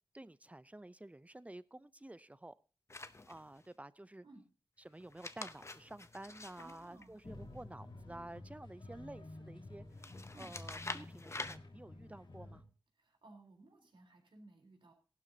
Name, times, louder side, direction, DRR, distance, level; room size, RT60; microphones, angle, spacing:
voice 1, 0.1-2.5 3.3-4.3 4.8-12.6, right 1 dB, 15° right, 17 dB, 0.5 m, -51 dB
sound 1, 2.9-3.7 5.0-7.6 10.0-11.6, left 2 dB, 35° left, 0.7 m, -47 dB
voice 2, 6.6-7.2 10.3-10.5 13.0-14.9, right 2 dB, 90° right, 2 dB, 3.9 m, -59 dB
sound 2, 7.2-12.6, left 2 dB, 85° left, 3.1 m, -51 dB
18.0 x 12.0 x 2.8 m, 0.35 s
wide cardioid pair, 70°, 8 cm